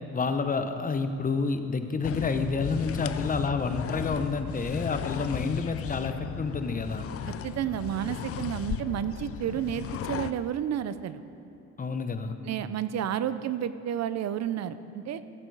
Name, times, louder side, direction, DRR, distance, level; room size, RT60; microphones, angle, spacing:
voice 1, 0.1-7.1 11.8-12.3, left 4 dB, 30° left, 8 dB, 0.8 m, -29 dB
sound 1, 2.0-10.3, left 10 dB, 50° left, 0.5 m, -35 dB
voice 2, 7.4-11.2 12.4-15.2, right 10 dB, 60° right, 13 dB, 0.6 m, -31 dB
15.0 x 7.6 x 4.7 m, 2.8 s
cardioid pair, 90°, 30 cm